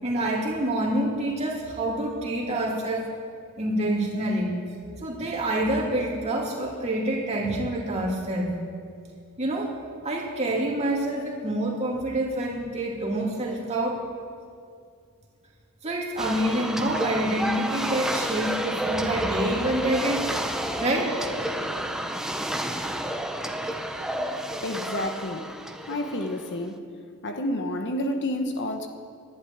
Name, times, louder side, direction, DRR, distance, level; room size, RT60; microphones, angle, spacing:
voice 1, 0.0-3.1 3.6-4.6 5.0-8.6 9.4-9.8 10.0-14.1 15.8-20.4 20.8-21.2, right 1 dB, 30° right, -2 dB, 2.7 m, -27 dB
sound 1, 16.2-26.6, right 1 dB, 5° right, 0.8 m, -30 dB
voice 2, 24.6-25.6 25.9-26.8 27.2-28.9, left 1 dB, 55° left, 5 dB, 1.2 m, -29 dB
11.5 x 11.0 x 10.0 m, 2.3 s
head